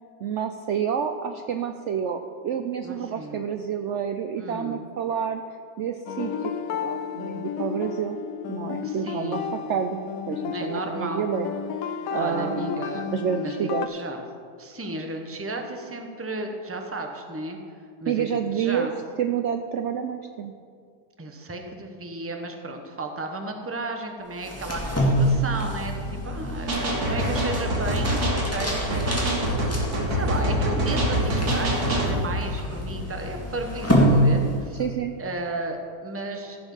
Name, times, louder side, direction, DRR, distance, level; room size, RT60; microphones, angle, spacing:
voice 1, 0.2-5.4 5.8-6.5 6.8-8.2 8.5-9.4 9.7-11.5 12.1-13.9 18.1-18.9 19.2-20.5 34.8-35.1, right 8 dB, 80° right, 7 dB, 0.6 m, -29 dB
voice 2, 2.8-3.5 4.4-4.8 8.8-9.6 10.5-11.3 12.1-13.1 13.3-14.2 14.6-17.6 18.0-18.3 18.5-18.9 21.2-28.2 28.5-29.5 30.1-34.8 35.2-36.7, right 2 dB, 10° right, 4 dB, 0.7 m, -34 dB
sound 1, 6.1-13.9, left 7 dB, 65° left, 0.9 m, -32 dB
sound 2, 24.4-34.9, equal, 10° left, 1.8 m, -27 dB
sound 3, 26.7-32.2, right 1 dB, 60° right, 2.4 m, -25 dB
15.0 x 7.1 x 5.5 m, 2.2 s
omnidirectional pair, 1.8 m